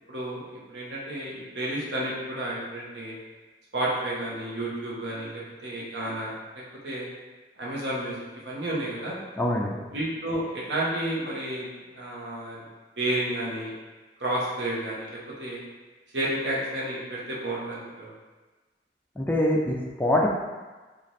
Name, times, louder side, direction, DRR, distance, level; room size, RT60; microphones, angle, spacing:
voice 1, 0.1-0.4 0.7-3.1 3.7-7.1 7.6-8.2 8.4-9.1 9.9-11.7 11.9-12.6 13.0-13.7 14.2-15.6 16.1-18.1, right 1 dB, 80° right, -5 dB, 1.0 m, -31 dB
voice 2, 9.4-9.8 19.2-20.3, left 1 dB, 10° left, -2 dB, 0.3 m, -24 dB
3.1 x 2.5 x 4.0 m, 1.3 s
head